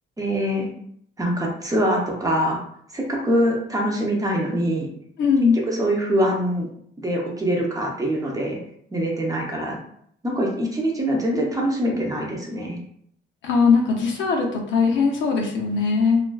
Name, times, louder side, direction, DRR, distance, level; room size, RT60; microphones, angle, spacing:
voice 1, 0.2-0.7 1.2-2.6 2.9-4.9 5.7-6.7 7.0-8.6 8.9-9.8 10.2-12.8, equal, 15° right, -2 dB, 0.7 m, -23 dB
voice 2, 5.2-5.6 13.4-16.2, left 5 dB, 70° left, 0 dB, 0.6 m, -20 dB
2.4 x 2.3 x 2.3 m, 0.67 s
cardioid pair, 90°, 20 cm